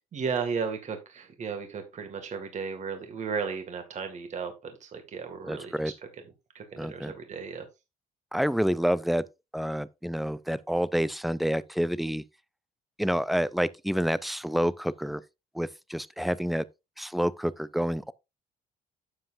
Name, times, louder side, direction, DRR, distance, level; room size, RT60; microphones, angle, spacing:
voice 1, 0.1-5.9 6.5-7.7, right 5 dB, 45° right, 2.0 m, -34 dB
voice 2, 5.5-5.9 6.8-7.1 8.3-9.2 9.5-12.2 13.0-15.2 15.5-16.6 17.0-18.1, equal, ahead, 0.4 m, -28 dB
11.0 x 7.7 x 2.6 m
cardioid pair, 110°, 17 cm